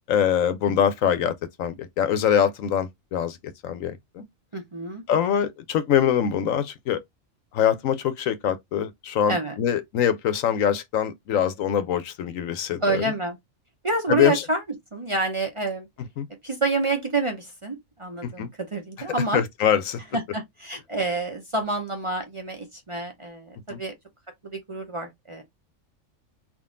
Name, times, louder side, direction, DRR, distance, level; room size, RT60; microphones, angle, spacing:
voice 1, 0.1-1.3 1.6-3.4 3.6-4.2 5.1-7.0 7.5-13.1 14.1-14.4 16.2-16.3 18.2-18.5 19.3-20.0 23.7-23.8, left 9 dB, 90° left, 1.1 m, -23 dB
voice 2, 4.5-5.0 9.3-9.5 12.8-13.4 13.8-14.6 14.9-15.9 16.4-19.4 20.1-23.9 24.4-25.4, right 2 dB, 30° right, 0.6 m, -28 dB
3.8 x 2.4 x 3.7 m
omnidirectional pair, 1.3 m